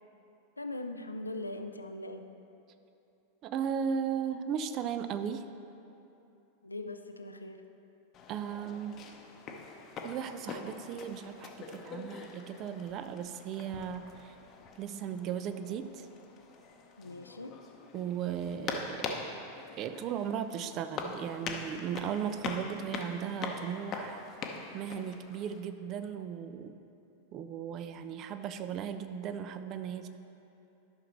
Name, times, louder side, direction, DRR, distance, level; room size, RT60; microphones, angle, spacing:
voice 1, 0.6-2.3 6.6-7.6 17.0-17.6, left 2 dB, 80° left, 7 dB, 0.4 m, -40 dB
voice 2, 3.4-5.5 8.3-9.1 10.0-14.3 14.8-16.1 17.9-19.1 19.8-24.2 24.7-26.7 27.3-30.1, right 8 dB, 35° right, 10 dB, 0.4 m, -36 dB
sound 1, 8.1-25.6, left 4 dB, 30° left, 0.7 m, -43 dB
12.0 x 5.9 x 3.1 m, 2.8 s
figure-of-eight pair, 90°, 0 cm